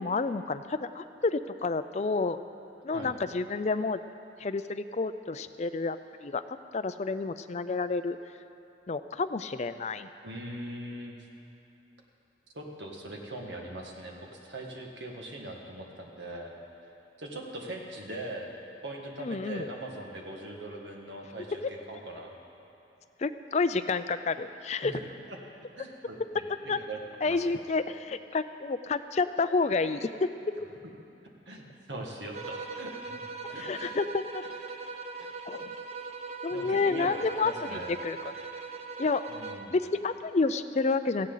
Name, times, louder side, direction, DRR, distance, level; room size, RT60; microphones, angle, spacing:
voice 1, 0.0-2.4 2.8-4.0 4.4-6.4 6.7-8.2 8.9-10.1 19.2-19.7 21.6-21.7 23.2-24.9 26.7-26.8 27.2-30.3 33.4-34.4 35.5-35.7 36.4-38.2 39.0-39.2 39.7-41.3, left 3 dB, 35° left, 11 dB, 0.4 m, -29 dB
voice 2, 10.2-11.2 12.5-16.5 17.2-18.5 18.8-22.4 24.8-24.9 25.3-25.4 25.8-26.2 26.6-27.6 31.5-33.2 33.5-34.0 35.2-35.3 36.5-38.0 39.3-39.8, right 1 dB, 70° right, 0 dB, 1.8 m, -41 dB
sound 1, 32.3-39.8, right 4 dB, 35° right, 0.8 m, -40 dB
17.5 x 15.0 x 4.0 m, 2.8 s
head